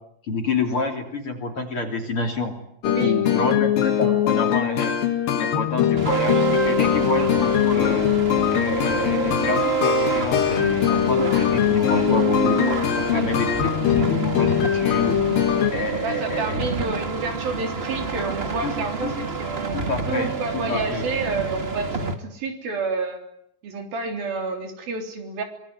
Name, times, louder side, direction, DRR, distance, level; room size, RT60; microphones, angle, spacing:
voice 1, 0.3-2.5 2.8-4.9 5.3-8.1 8.5-15.2 15.7-16.6 18.6-18.7 19.0-19.1 19.7-20.3 20.7-21.1, left 3 dB, 35° left, 4 dB, 3.8 m, -28 dB
sound 1, 2.8-15.7, left 10 dB, 70° left, 3.4 m, -22 dB
voice 2, 2.9-3.5 13.1-13.5 16.0-23.2 23.6-25.4, right 4 dB, 70° right, 4 dB, 5.3 m, -30 dB
sound 2, 6.0-22.1, right 5 dB, 30° right, 1.1 m, -28 dB
25.5 x 21.5 x 9.6 m, 0.73 s
omnidirectional pair, 4.3 m